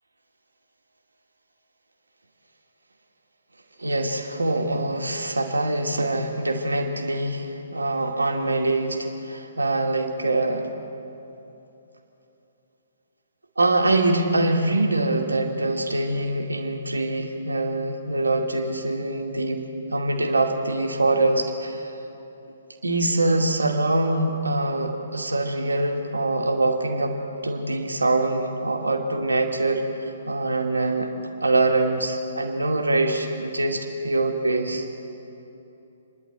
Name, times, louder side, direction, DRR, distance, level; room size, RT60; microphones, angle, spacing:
voice 1, 3.8-10.7 13.6-21.9 22.8-27.2 27.4-31.1 31.4-34.8, right 2 dB, 75° right, 2 dB, 2.4 m, -24 dB
28.0 x 11.0 x 9.1 m, 2.9 s
figure-of-eight pair, 130°, 0 cm